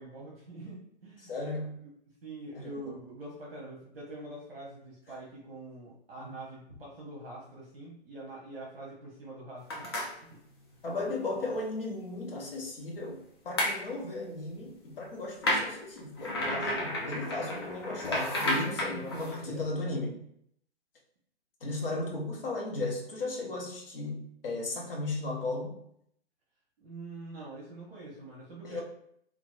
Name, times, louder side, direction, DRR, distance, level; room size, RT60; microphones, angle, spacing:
voice 1, 0.0-1.3 2.2-9.9 10.2-10.4 16.6-16.9 18.6-19.6 26.8-28.8, right 2 dB, 60° right, -4 dB, 0.8 m, -45 dB
voice 2, 1.2-1.8 2.5-2.9 6.2-6.3 10.8-20.2 21.6-25.7 28.6-28.8, left 2 dB, 55° left, -1 dB, 0.9 m, -35 dB
sound 1, 9.7-10.1 13.6-13.8 15.4-19.4, left 1 dB, 25° left, 0.4 m, -31 dB
2.9 x 2.3 x 2.3 m, 0.69 s
figure-of-eight pair, 130°, 34 cm